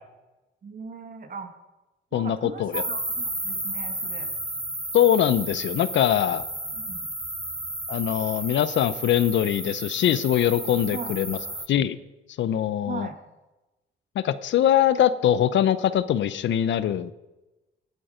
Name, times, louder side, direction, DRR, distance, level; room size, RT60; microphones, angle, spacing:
voice 1, 0.6-1.6 2.1-4.3 6.7-7.1 10.9-11.2 12.9-13.2, right 4 dB, 45° right, 6 dB, 2.1 m, -38 dB
voice 2, 2.1-2.8 4.9-6.4 7.9-11.4 11.7-12.0 12.4-13.1 14.2-17.1, left 10 dB, 70° left, 15 dB, 0.7 m, -22 dB
sound 1, 2.7-11.7, right 1 dB, 5° right, 0.5 m, -33 dB
18.0 x 8.5 x 5.1 m, 1.1 s
cardioid pair, 90°, 20 cm